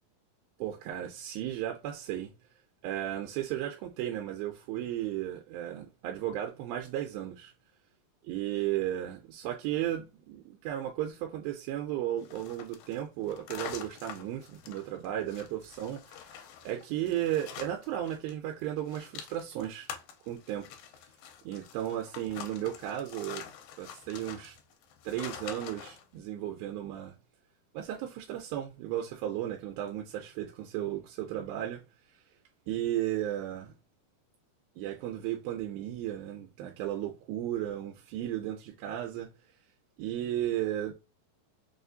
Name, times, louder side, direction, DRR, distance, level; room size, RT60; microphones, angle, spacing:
voice 1, 0.6-2.3 2.8-7.5 8.3-19.9 20.3-20.7 21.4-23.4 23.8-24.6 25.0-27.1 27.7-31.8 32.7-33.7 34.8-39.3 40.0-40.9, right 12 dB, 90° right, 2.4 m, -34 dB
sound 1, 12.2-18.3 18.6-26.0, left 8 dB, 80° left, 2.2 m, -46 dB
5.6 x 2.4 x 2.6 m
omnidirectional pair, 4.2 m